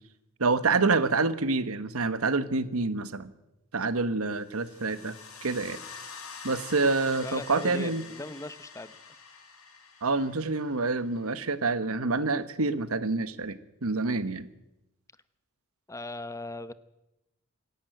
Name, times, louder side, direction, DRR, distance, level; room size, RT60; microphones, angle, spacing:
voice 1, 0.4-3.3 3.7-5.1 5.4-5.8 6.4-8.0 10.0-14.5, right 3 dB, 90° right, 13 dB, 1.3 m, -27 dB
sound 1, 4.4-11.3, left 5 dB, 80° left, 4.7 m, -46 dB
voice 2, 7.2-9.0 15.9-16.7, left 2 dB, 15° left, 14 dB, 0.8 m, -39 dB
26.5 x 11.5 x 9.1 m, 0.93 s
head